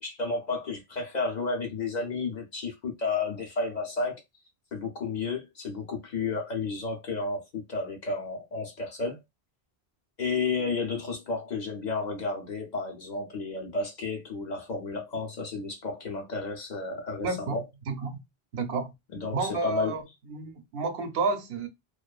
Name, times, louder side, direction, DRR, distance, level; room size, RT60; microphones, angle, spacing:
voice 1, 0.0-4.2 4.7-9.2 10.2-17.6 19.1-20.0, left 3 dB, 50° left, 0.7 m, -32 dB
voice 2, 17.2-18.2 18.5-18.9 19.3-20.0 20.3-21.7, right 4 dB, 75° right, 0.8 m, -30 dB
2.5 x 2.3 x 2.3 m
omnidirectional pair, 1.0 m